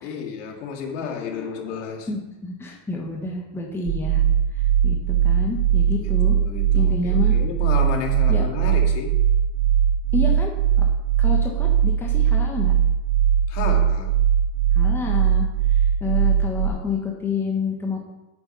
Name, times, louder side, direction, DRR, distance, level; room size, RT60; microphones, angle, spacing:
voice 1, 0.0-2.1 6.0-9.1 13.5-14.2, left 6 dB, 70° left, 2 dB, 2.4 m, -32 dB
voice 2, 2.1-4.2 4.5-6.3 6.7-7.3 8.3-8.4 10.1-10.5 10.8-10.9 11.2-12.7 14.7-15.5 15.8-18.0, left 4 dB, 5° left, -1 dB, 1.2 m, -29 dB
sound 1, 3.9-16.7, right 9 dB, 80° right, 3.4 m, -20 dB
8.6 x 7.9 x 5.6 m, 1.0 s
supercardioid pair, 160°, 38 cm